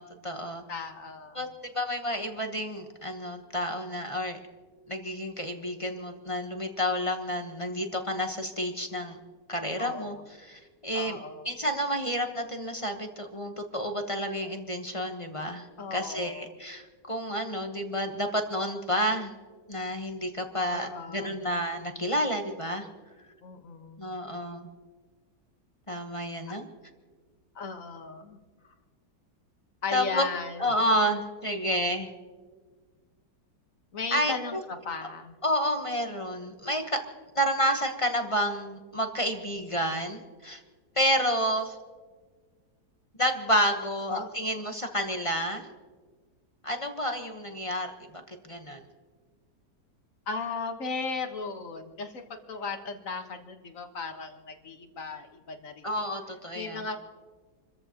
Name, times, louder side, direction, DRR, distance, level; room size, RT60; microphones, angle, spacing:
voice 1, 0.0-0.6 1.3-1.5 1.7-4.4 4.9-9.2 9.5-11.2 11.4-19.3 19.7-22.9 24.0-24.6 25.9-26.7 29.9-30.2 30.6-32.1 34.1-34.6 35.4-37.0 37.3-40.6 40.9-41.8 43.2-45.7 46.6-48.8 55.8-56.8, equal, 20° left, 4 dB, 1.0 m, -30 dB
voice 2, 0.7-1.4 9.8-10.2 10.9-11.5 15.8-16.5 20.7-21.4 23.4-24.1 27.5-28.4 29.8-30.7 33.9-35.3 44.1-44.3 50.3-55.8 56.5-57.0, left 4 dB, 50° left, 5 dB, 1.7 m, -36 dB
28.0 x 14.5 x 3.0 m, 1.5 s
omnidirectional pair, 1.9 m